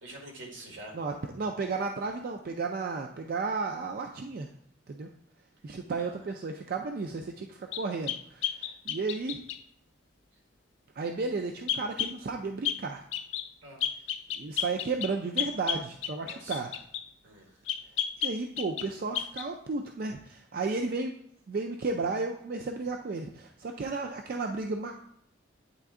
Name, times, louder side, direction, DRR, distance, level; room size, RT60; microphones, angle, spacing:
voice 1, 0.0-1.0 5.9-6.2 13.6-13.8 16.2-16.6 17.2-17.6, right 1 dB, 80° right, 0 dB, 1.7 m, -46 dB
voice 2, 0.9-4.5 4.9-5.1 5.6-9.4 11.0-13.0 14.4-16.8 18.2-21.1 21.5-24.9, right 3 dB, 50° right, 3 dB, 0.4 m, -33 dB
sound 1, 7.7-9.6 11.7-12.2 12.6-12.8 13.1-13.5 13.8-17.1 17.7-18.9 19.1-19.5, left 9 dB, 80° left, 0.4 m, -32 dB
8.9 x 3.4 x 3.6 m, 0.69 s
head